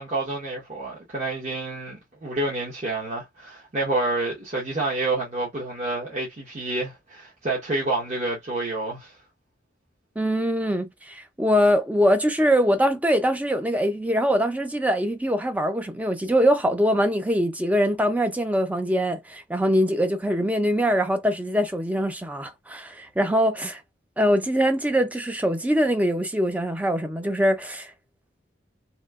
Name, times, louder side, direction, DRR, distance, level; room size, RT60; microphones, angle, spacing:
voice 1, 0.0-9.1, right 2 dB, 40° right, 1.0 m, -28 dB
voice 2, 10.2-23.8 24.2-27.9, equal, 10° right, 0.5 m, -23 dB
3.0 x 2.7 x 2.4 m
head